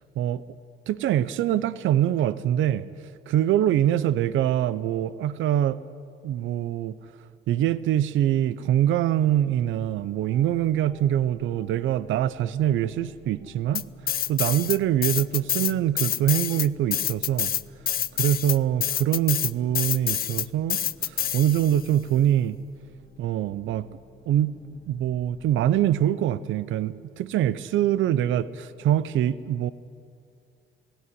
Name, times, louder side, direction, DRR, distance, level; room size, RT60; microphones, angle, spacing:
voice 1, 0.9-2.9 3.3-5.8 6.2-6.9 7.5-13.8 14.3-17.5 18.1-22.6 23.2-23.9 24.3-24.6 24.9-29.7, right 11 dB, 80° right, 16 dB, 0.6 m, -24 dB
sound 1, 9.4-25.8, left 2 dB, 20° left, 1.5 m, -52 dB
sound 2, 13.7-14.8 15.0-21.8, left 10 dB, 50° left, 0.5 m, -27 dB
17.5 x 16.0 x 9.8 m, 2.3 s
cardioid pair, 90°, 20 cm